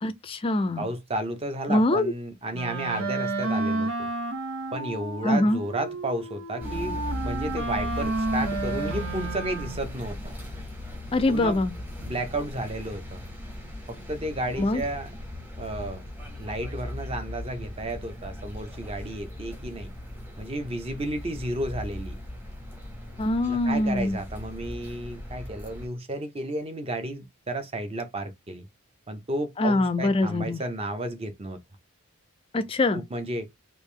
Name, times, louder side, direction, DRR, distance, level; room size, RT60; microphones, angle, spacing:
voice 1, 0.0-0.9 1.7-2.1 5.2-5.6 11.1-11.7 14.6-14.8 23.2-24.2 29.6-30.6 32.5-33.0, left 2 dB, 25° left, 0.4 m, -23 dB
voice 2, 0.8-4.1 4.7-10.3 11.3-11.6 12.0-13.2 13.9-15.1 15.6-16.0 16.4-19.9 20.4-22.2 23.5-28.7 29.1-31.6 32.9-33.5, right 1 dB, 25° right, 0.7 m, -32 dB
Wind instrument woodwind instrument, 2.5-10.0, right 2 dB, 90° right, 1.1 m, -31 dB
sound 1, 6.6-25.9, left 1 dB, 10° right, 1.0 m, -38 dB
3.4 x 2.6 x 3.2 m
head